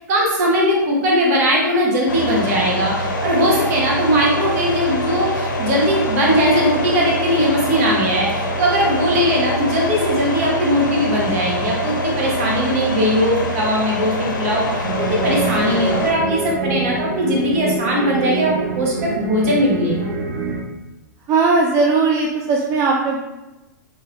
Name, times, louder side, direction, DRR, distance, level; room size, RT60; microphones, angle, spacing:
voice 1, 0.1-20.1, equal, 50° right, -2 dB, 1.1 m, -19 dB
sound 1, 2.1-16.1, left 1 dB, 80° left, 0.6 m, -24 dB
sound 2, 14.8-20.6, right 3 dB, 70° right, 0.7 m, -25 dB
voice 2, 21.3-23.2, right 4 dB, 25° right, -1 dB, 0.3 m, -18 dB
3.3 x 2.7 x 2.5 m, 1.0 s
hypercardioid pair, 120°, 10 cm